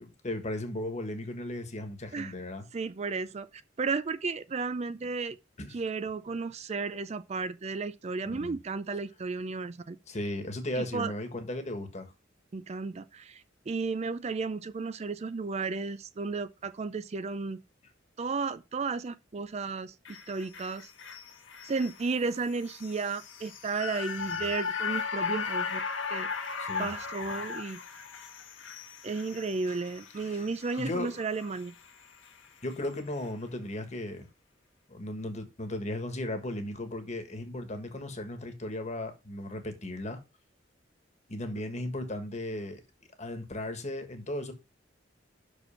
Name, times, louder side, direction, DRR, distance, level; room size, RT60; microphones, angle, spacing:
voice 1, 0.0-2.6 5.6-5.8 8.2-8.6 10.1-12.1 24.3-24.5 26.6-26.9 27.3-27.4 30.2-30.5 30.8-31.1 32.6-34.3 34.9-40.2 41.3-42.8 43.2-44.5, left 1 dB, 40° left, 1.6 m, -36 dB
voice 2, 2.7-3.5 3.8-5.4 5.7-10.0 10.8-11.1 12.5-17.6 18.2-20.9 21.7-25.8 26.1-27.8 29.0-31.7, right 4 dB, 35° right, 0.4 m, -33 dB
sound 1, 20.0-32.4 32.7-32.8, left 5 dB, 90° left, 1.5 m, -37 dB
6.1 x 5.3 x 5.7 m
head